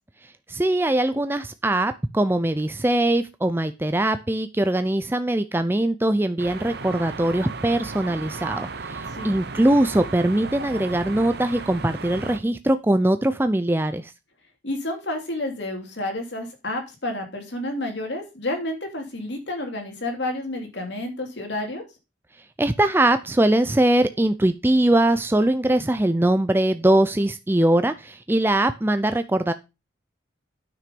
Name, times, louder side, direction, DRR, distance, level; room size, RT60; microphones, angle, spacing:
voice 1, 0.5-14.1 22.6-29.5, right 1 dB, 10° right, 0.4 m, -21 dB
sound 1, 6.4-12.4, right 4 dB, 55° right, 0.8 m, -35 dB
voice 2, 14.6-21.8, left 1 dB, 60° left, 2.8 m, -30 dB
9.7 x 6.1 x 5.2 m
head